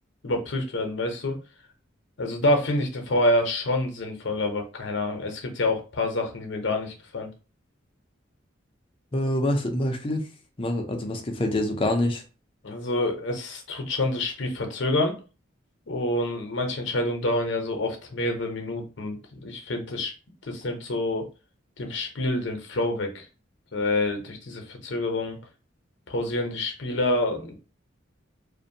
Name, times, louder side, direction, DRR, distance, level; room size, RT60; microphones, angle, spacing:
voice 1, 0.2-1.4 2.2-7.3 12.6-15.1 15.9-20.1 20.4-21.3 21.8-23.3 23.7-25.4 26.1-27.6, left 1 dB, 65° left, 3 dB, 0.7 m, -27 dB
voice 2, 9.1-10.3 10.6-12.2, left 1 dB, 25° left, 4 dB, 0.5 m, -26 dB
2.5 x 2.1 x 2.6 m, 0.33 s
head